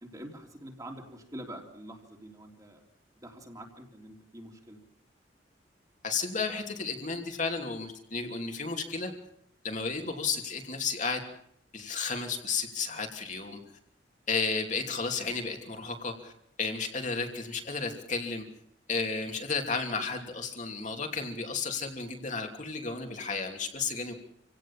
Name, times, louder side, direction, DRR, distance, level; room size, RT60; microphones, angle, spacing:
voice 1, 0.0-2.8 3.2-4.8, right 1 dB, 20° right, 2 dB, 3.1 m, -45 dB
voice 2, 6.0-9.1 9.6-11.2 11.7-13.6 14.3-16.3 16.6-18.4 18.9-24.1, left 4 dB, 40° left, 3 dB, 3.1 m, -33 dB
27.5 x 17.5 x 7.4 m, 0.70 s
head